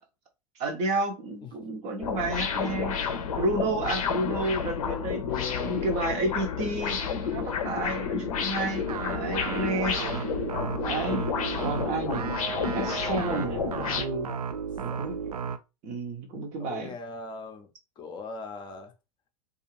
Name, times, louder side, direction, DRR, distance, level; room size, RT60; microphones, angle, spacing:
voice 1, 0.6-3.0 3.4-5.2 5.6-10.2 10.8-11.2 11.6-12.3 12.7-13.7 13.9-14.3 14.8-15.2 15.8-16.9, right 2 dB, 35° right, 0.6 m, -31 dB
sound 1, 2.0-14.0, left 6 dB, 65° left, 0.6 m, -31 dB
voice 2, 5.2-6.3 14.9-15.4 16.6-17.7 18.0-18.9, left 5 dB, 25° left, 0.6 m, -39 dB
sound 2, 8.9-15.6, right 7 dB, 75° right, 0.4 m, -34 dB
2.4 x 2.4 x 3.0 m
figure-of-eight pair, 90°, 20 cm